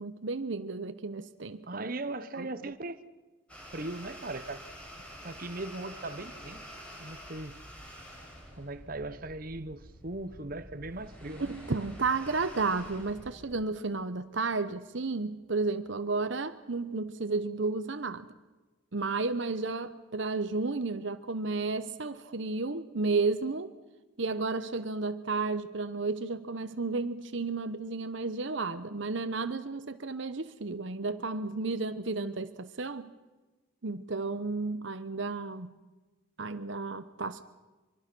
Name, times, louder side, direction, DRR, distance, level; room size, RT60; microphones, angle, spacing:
voice 1, 0.0-1.9 2.4-2.5 11.4-18.3 18.9-23.7 24.2-33.1 33.8-35.8 36.4-37.4, right 3 dB, 65° right, 0.9 m, -32 dB
voice 2, 1.7-3.0 3.7-4.6 5.2-6.7 7.0-7.6 8.5-11.5, right 2 dB, 45° right, 1.1 m, -39 dB
sound 1, 3.5-13.5, equal, 5° left, 7.6 m, -48 dB
25.0 x 24.5 x 6.2 m
head